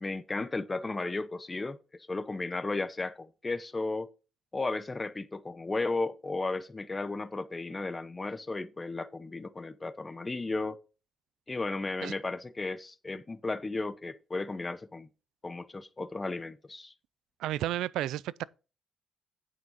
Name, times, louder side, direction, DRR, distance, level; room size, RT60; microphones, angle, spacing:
voice 1, 0.0-1.8 2.1-4.1 4.5-10.8 11.5-15.1 15.4-16.9, left 3 dB, 20° left, 0.8 m, -34 dB
voice 2, 17.4-18.4, right 13 dB, 85° right, 0.4 m, -32 dB
9.0 x 6.1 x 5.3 m
cardioid pair, 90°, 0 cm